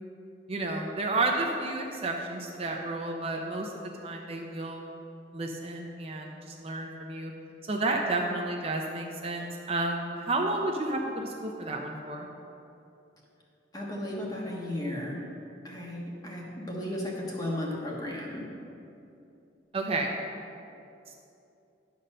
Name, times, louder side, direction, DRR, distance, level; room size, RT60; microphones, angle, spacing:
voice 1, 0.5-3.7 4.0-4.9 5.3-7.3 7.7-12.3 19.7-20.1, right 2 dB, 30° right, 1 dB, 0.6 m, -31 dB
voice 2, 13.7-15.3 15.6-18.5, left 1 dB, 20° left, -3 dB, 1.3 m, -35 dB
10.5 x 4.2 x 6.5 m, 2.7 s
head